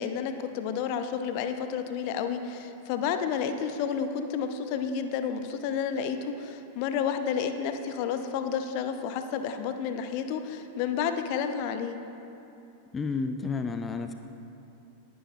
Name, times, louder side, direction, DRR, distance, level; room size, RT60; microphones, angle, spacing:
voice 1, 0.0-12.0, left 7 dB, 45° left, 8 dB, 0.8 m, -31 dB
voice 2, 12.9-14.1, left 4 dB, 15° left, 7 dB, 0.5 m, -31 dB
19.0 x 11.0 x 3.2 m, 2.8 s
figure-of-eight pair, 90°, 0 cm